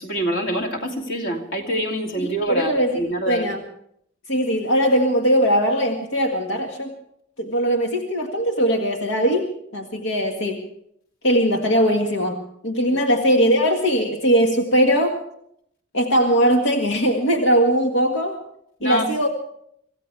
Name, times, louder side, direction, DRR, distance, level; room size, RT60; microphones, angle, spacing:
voice 1, 0.0-3.5 12.9-13.0 18.8-19.1, right 1 dB, 65° left, 2 dB, 2.8 m, -26 dB
voice 2, 2.2-3.0 3.3-3.6 4.3-7.0 7.4-10.7 11.2-15.2 15.9-18.4 18.8-19.3, equal, 85° left, 2 dB, 1.9 m, -20 dB
25.5 x 16.0 x 3.5 m, 0.70 s
head